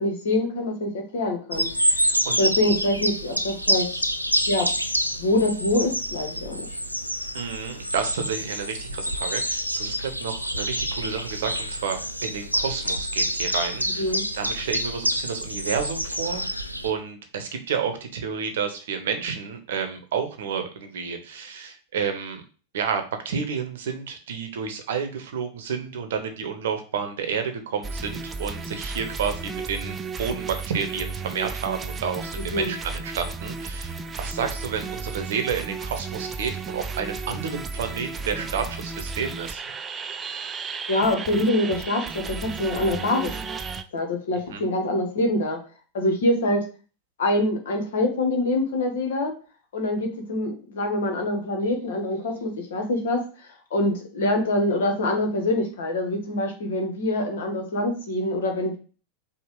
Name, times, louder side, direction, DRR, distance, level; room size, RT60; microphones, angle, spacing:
voice 1, 0.0-1.7 2.4-4.1 4.5-4.7 5.2-6.6 14.0-14.2 32.5-32.7 40.9-43.3 43.9-45.6 45.9-46.6 47.2-49.3 49.7-58.8, left 1 dB, 60° left, 3 dB, 1.3 m, -25 dB
sound 1, 1.5-16.9, equal, 90° right, 0.4 m, -27 dB
voice 2, 1.8-2.4 7.3-16.4 16.8-22.4 22.7-39.6 44.5-44.6, right 6 dB, 60° right, 6 dB, 0.9 m, -30 dB
sound 2, 27.8-43.8, right 4 dB, 20° right, 0.4 m, -34 dB
4.8 x 2.3 x 3.7 m, 0.37 s
figure-of-eight pair, 90°, 0 cm